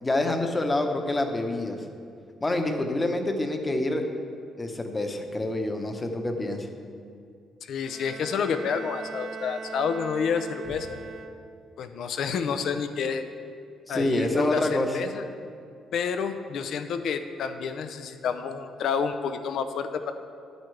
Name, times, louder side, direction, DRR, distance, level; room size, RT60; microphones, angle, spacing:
voice 1, 0.0-1.8 2.4-4.0 4.6-6.7 13.9-15.0, left 1 dB, 20° left, 5 dB, 1.0 m, -27 dB
voice 2, 7.6-11.0 11.8-13.2 13.9-15.2 15.9-20.1, left 6 dB, 70° left, 8 dB, 0.6 m, -29 dB
Bowed string instrument, 7.8-11.8, right 5 dB, 55° right, 0.4 m, -40 dB
10.5 x 8.1 x 3.3 m, 2.4 s
cardioid pair, 90°, 0 cm